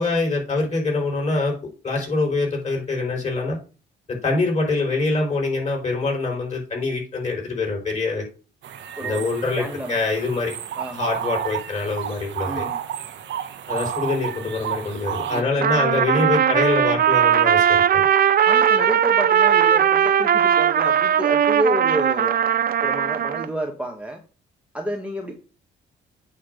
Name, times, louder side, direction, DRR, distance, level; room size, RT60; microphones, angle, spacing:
voice 1, 0.0-1.5 1.8-3.6 4.1-8.2 9.0-10.6 10.9-12.7 13.7-18.0, left 3 dB, 35° left, 0 dB, 4.4 m, -24 dB
sound 1, 8.6-15.4, right 9 dB, 70° right, 1.1 m, -31 dB
voice 2, 9.6-10.0 10.8-11.1 12.5-12.8 15.3-15.8 18.4-22.3 22.8-24.2 24.7-25.4, right 1 dB, 5° right, 2 dB, 1.2 m, -29 dB
Trumpet, 15.6-23.5, right 9 dB, 50° right, 0.6 m, -18 dB
8.8 x 3.2 x 6.4 m, 0.34 s
cardioid pair, 90°, 20 cm